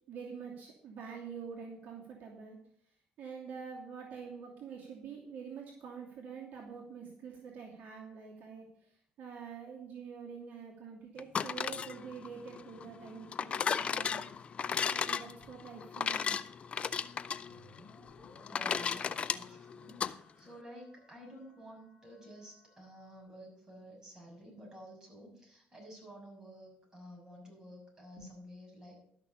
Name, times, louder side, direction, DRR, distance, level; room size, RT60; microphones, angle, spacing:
voice 1, 0.1-2.6 3.2-8.6 9.2-14.2 14.9-16.3 28.2-28.3, right 6 dB, 60° right, -2 dB, 2.7 m, -46 dB
sound 1, 11.2-20.1, left 7 dB, 40° left, 0.5 m, -35 dB
sound 2, 17.5-23.2, left 1 dB, 10° left, 4.3 m, -62 dB
voice 2, 18.5-29.0, equal, 20° right, -1 dB, 6.2 m, -52 dB
12.5 x 6.3 x 7.1 m, 0.68 s
cardioid pair, 115°, 3 cm